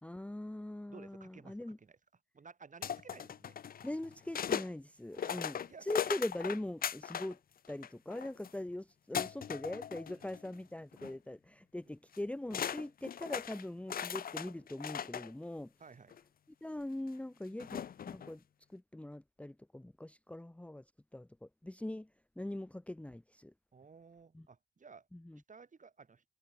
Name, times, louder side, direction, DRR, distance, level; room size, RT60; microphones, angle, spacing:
voice 1, 0.0-1.8 3.8-7.4 7.7-15.7 16.6-18.4 18.7-20.8 21.1-22.1 22.4-23.5 24.3-24.5 25.1-25.4, left 1 dB, 5° left, 0.8 m, -42 dB
voice 2, 0.9-2.0 2.3-3.6 5.2-5.9 10.1-10.3 15.8-16.2 17.5-17.7 23.7-25.1 25.5-26.2, right 5 dB, 45° right, 6.5 m, -56 dB
sound 1, 2.8-4.7 5.1-7.3 7.6-8.5 9.1-10.6 10.9-11.1 12.1-12.2 12.5-15.3 16.1-16.2 17.6-18.3, left 8 dB, 50° left, 0.7 m, -39 dB
cardioid pair, 70°, 19 cm